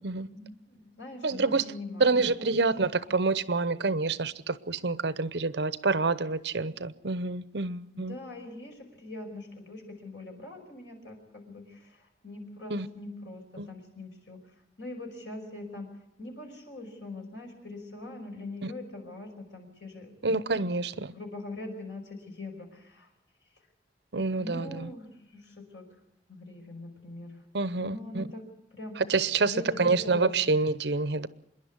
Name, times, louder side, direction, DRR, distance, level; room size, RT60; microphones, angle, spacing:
voice 1, 0.2-2.1 2.4-2.7 7.9-14.4 14.8-15.9 16.2-20.1 20.6-20.7 21.1-23.1 24.4-26.0 26.3-27.4 27.8-28.5 28.7-29.0 29.4-30.5, left 2 dB, 90° left, 5.7 m, -42 dB
voice 2, 1.2-1.7 2.0-8.2 12.7-12.9 13.6-13.7 18.6-18.7 20.2-21.1 24.1-24.9 27.5-28.3 29.0-29.5 29.8-31.3, right 3 dB, 70° right, 0.8 m, -27 dB
26.5 x 11.0 x 9.6 m
head